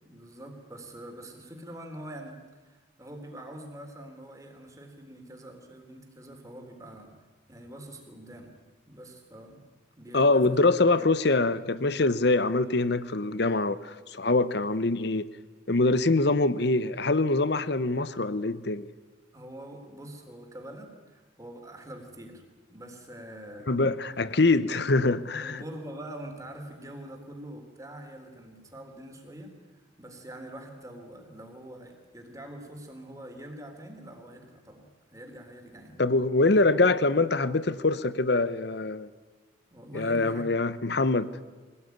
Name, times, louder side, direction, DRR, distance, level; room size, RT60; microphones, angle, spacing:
voice 1, 0.0-7.2 7.5-8.5 8.9-9.7 10.0-10.6 11.0-11.1 19.3-22.4 22.7-23.8 25.4-36.0 39.7-40.5 40.8-40.9, right 1 dB, 15° right, 3 dB, 3.6 m, -44 dB
voice 2, 10.1-15.3 15.7-18.9 23.7-25.6 36.0-39.1 39.9-41.3, left 2 dB, 60° left, 15 dB, 0.9 m, -24 dB
25.0 x 18.5 x 9.4 m, 1.3 s
head